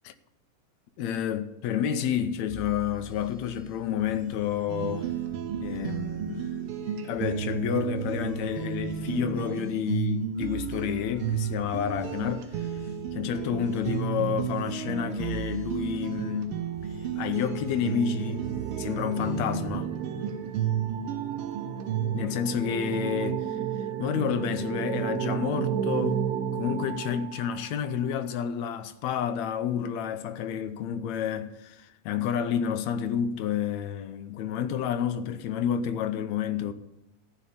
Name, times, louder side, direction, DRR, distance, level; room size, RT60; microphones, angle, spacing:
voice 1, 1.0-5.1 5.6-6.5 7.0-12.8 13.1-16.6 17.2-18.5 18.8-19.9 22.1-26.2 26.5-36.7, left 8 dB, 75° left, 1.8 m, -30 dB
sound 1, 2.5-19.8, right 2 dB, 10° left, 5.4 m, -46 dB
sound 2, 4.7-22.2, right 9 dB, 85° right, 1.2 m, -33 dB
sound 3, 17.1-27.8, right 9 dB, 70° right, 1.6 m, -33 dB
14.5 x 5.2 x 8.5 m
omnidirectional pair, 3.6 m